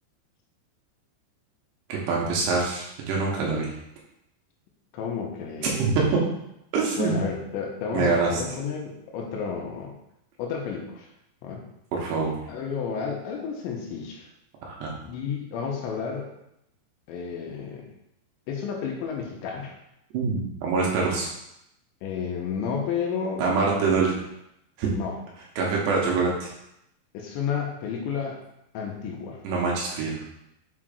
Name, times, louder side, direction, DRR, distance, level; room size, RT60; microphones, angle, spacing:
voice 1, 1.9-3.7 5.6-6.2 6.7-7.2 7.9-8.4 11.9-12.3 14.7-14.9 20.1-21.3 23.4-24.1 24.8-24.9 25.6-26.5 29.4-30.2, right 4 dB, 75° right, -3 dB, 3.0 m, -24 dB
voice 2, 4.9-5.8 7.0-10.0 10.4-11.1 11.4-11.6 12.5-14.2 15.0-16.3 17.1-17.9 18.5-19.8 22.0-23.4 23.9-24.0 24.9-25.2 27.1-28.4 28.7-29.4, left 6 dB, 85° left, 0 dB, 3.0 m, -31 dB
7.4 x 5.1 x 2.5 m, 0.81 s
omnidirectional pair, 5.3 m